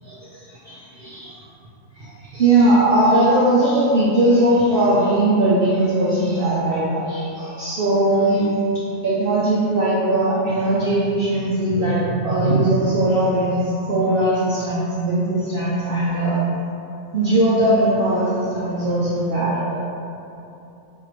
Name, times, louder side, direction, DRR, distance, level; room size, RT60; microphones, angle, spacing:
voice 1, 0.0-1.3 1.9-8.5 9.0-16.4 17.1-19.7, right 1 dB, 70° right, -8 dB, 0.5 m, -19 dB
3.7 x 2.7 x 3.0 m, 2.8 s
omnidirectional pair, 1.5 m